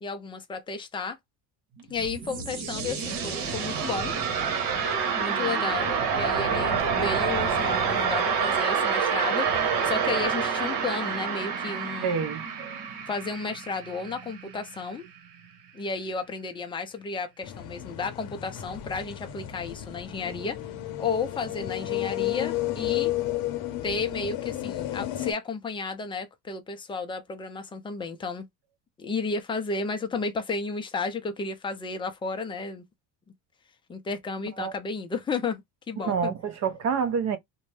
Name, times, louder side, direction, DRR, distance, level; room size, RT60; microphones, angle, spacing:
voice 1, 0.0-1.2 1.9-4.1 5.2-12.2 13.1-15.1 15.7-20.6 21.0-23.1 23.8-28.5 29.0-32.8 33.9-36.3, left 4 dB, 10° left, 0.4 m, -33 dB
sound 1, 1.8-14.6, right 6 dB, 65° right, 1.2 m, -27 dB
voice 2, 12.0-12.8 34.6-34.7 36.0-37.4, right 6 dB, 40° right, 0.6 m, -28 dB
sound 2, 17.4-25.3, left 14 dB, 55° left, 0.7 m, -32 dB
2.6 x 2.2 x 3.2 m
cardioid pair, 140°, 44 cm